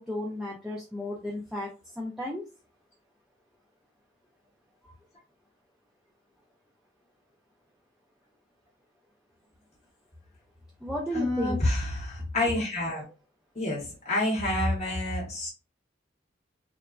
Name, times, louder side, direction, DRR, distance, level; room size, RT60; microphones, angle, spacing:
voice 1, 0.0-2.4 4.8-4.9 10.8-11.6, left 1 dB, 5° right, -3 dB, 0.3 m, -34 dB
voice 2, 11.1-13.1 13.6-15.5, left 1 dB, 35° left, -3 dB, 0.8 m, -28 dB
3.1 x 2.1 x 2.4 m, 0.32 s
head